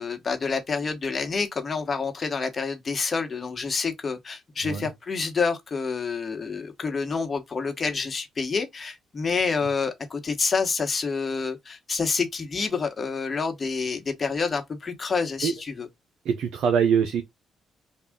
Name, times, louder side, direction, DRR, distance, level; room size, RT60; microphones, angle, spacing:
voice 1, 0.0-15.9, left 5 dB, 40° left, 1.1 m, -28 dB
voice 2, 16.2-17.2, right 7 dB, 75° right, 0.6 m, -23 dB
3.6 x 2.4 x 3.6 m
supercardioid pair, 65°, 0 cm